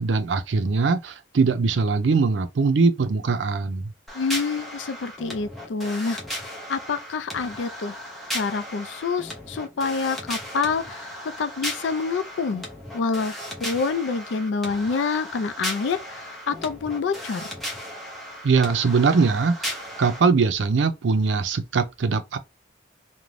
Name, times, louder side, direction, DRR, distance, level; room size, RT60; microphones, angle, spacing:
voice 1, 0.0-3.9 18.4-22.4, right 4 dB, 75° right, 0.5 m, -21 dB
voice 2, 4.1-6.2 6.7-7.9 8.3-11.1 11.4-12.6 12.9-13.3 13.6-17.5, left 4 dB, 75° left, 0.4 m, -27 dB
sound 1, 4.1-20.2, equal, ahead, 0.7 m, -36 dB
2.5 x 2.2 x 3.1 m
head